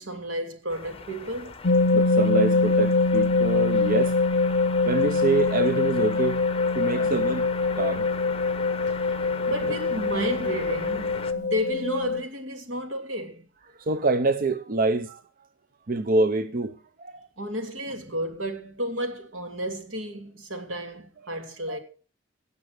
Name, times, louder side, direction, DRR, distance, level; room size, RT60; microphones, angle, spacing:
voice 1, 0.0-1.6 9.0-9.2 9.5-13.5 17.4-21.8, equal, 80° right, 3.0 m, -32 dB
sound 1, 0.7-11.3, left 4 dB, 30° left, 1.0 m, -39 dB
sound 2, 1.6-12.2, left 3 dB, 60° left, 0.7 m, -24 dB
voice 2, 1.9-6.4 6.7-7.5 7.7-8.1 9.6-9.8 11.3-11.4 13.7-15.2 15.9-17.3 21.7-21.8, right 3 dB, 45° right, 0.7 m, -26 dB
17.5 x 6.9 x 6.6 m
head